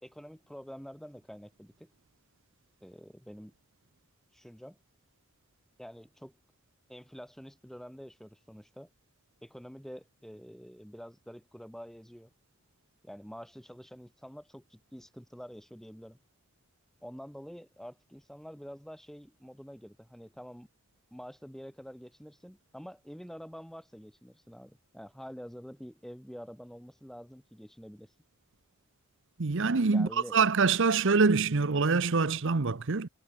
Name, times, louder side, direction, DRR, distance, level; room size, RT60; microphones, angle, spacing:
voice 1, 0.0-1.9 2.8-3.5 4.3-4.8 5.8-6.3 6.9-8.9 9.4-12.3 13.0-16.2 17.0-20.7 21.1-28.2 29.9-30.4, equal, ahead, 2.7 m, -47 dB
voice 2, 29.4-33.1, right 4 dB, 65° right, 0.9 m, -25 dB
head